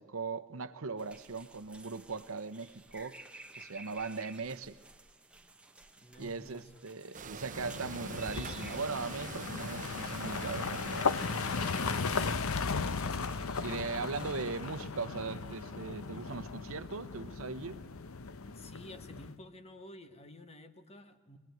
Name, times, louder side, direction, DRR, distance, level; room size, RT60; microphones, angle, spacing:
voice 1, 0.0-3.2 3.5-4.8 6.2-11.3 13.6-17.8, right 4 dB, 65° right, 0.9 m, -39 dB
sound 1, 1.0-14.6, right 2 dB, 5° right, 1.2 m, -55 dB
voice 2, 6.0-6.7 18.5-21.4, left 1 dB, 30° left, 1.3 m, -51 dB
sound 2, 7.1-12.3, right 5 dB, 35° right, 0.8 m, -45 dB
sound 3, 7.5-19.3, left 5 dB, 70° left, 0.8 m, -36 dB
24.0 x 20.0 x 9.3 m
head